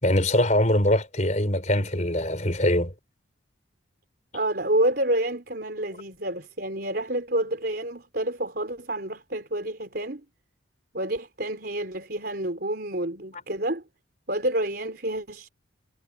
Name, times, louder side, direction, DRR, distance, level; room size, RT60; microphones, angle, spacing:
voice 1, 0.0-2.9, left 1 dB, 35° left, 5.4 m, -22 dB
voice 2, 4.3-10.2 10.9-13.8 14.3-15.5, right 1 dB, 50° right, 4.7 m, -28 dB
head